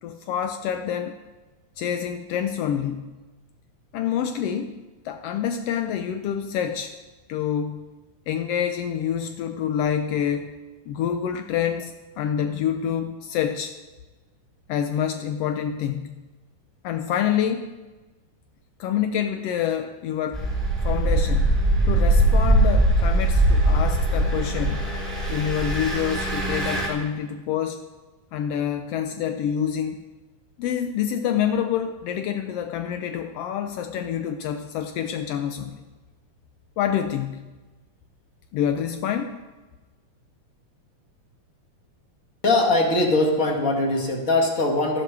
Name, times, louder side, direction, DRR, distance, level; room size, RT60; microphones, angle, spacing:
voice 1, 0.0-1.2 1.8-3.2 3.9-4.8 5.0-6.9 7.3-7.8 8.3-10.6 10.9-13.7 14.7-16.2 16.8-17.7 18.8-20.4 20.8-24.9 25.3-27.8 28.3-30.0 30.6-35.8 36.8-37.5 38.5-39.4, left 9 dB, 85° left, 7 dB, 1.4 m, -27 dB
Engine, 20.3-26.9, right 1 dB, ahead, 2.8 m, -21 dB
voice 2, 42.4-45.0, left 2 dB, 35° left, 1 dB, 1.8 m, -21 dB
12.5 x 11.5 x 4.7 m, 1.2 s
omnidirectional pair, 3.4 m